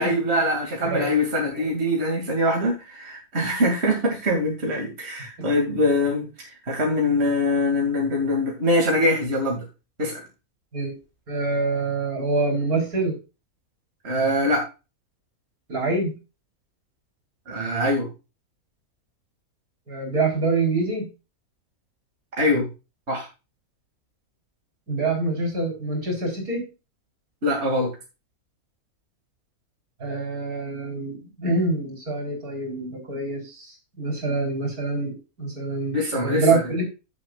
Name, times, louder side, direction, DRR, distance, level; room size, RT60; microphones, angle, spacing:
voice 1, 0.0-6.3 6.7-9.7 10.0-10.2 14.0-14.7 17.5-18.1 22.4-22.7 23.1-23.3 27.4-27.9 35.9-36.6, left 1 dB, 45° right, 0 dB, 2.9 m, -23 dB
voice 2, 11.3-13.1 15.7-16.2 19.9-21.1 24.9-26.6 30.0-36.8, right 3 dB, 75° right, 1 dB, 4.7 m, -26 dB
15.5 x 7.2 x 2.5 m, 0.29 s
omnidirectional pair, 1.6 m